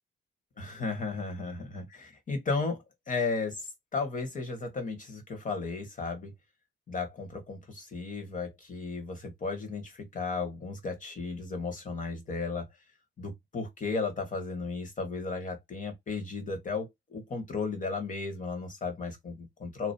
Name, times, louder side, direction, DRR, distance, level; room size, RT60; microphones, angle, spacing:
voice 1, 0.6-6.3 6.9-12.7 13.2-19.9, left 4 dB, 40° left, 1.6 m, -34 dB
3.1 x 2.4 x 2.7 m
cardioid pair, 90°, 20 cm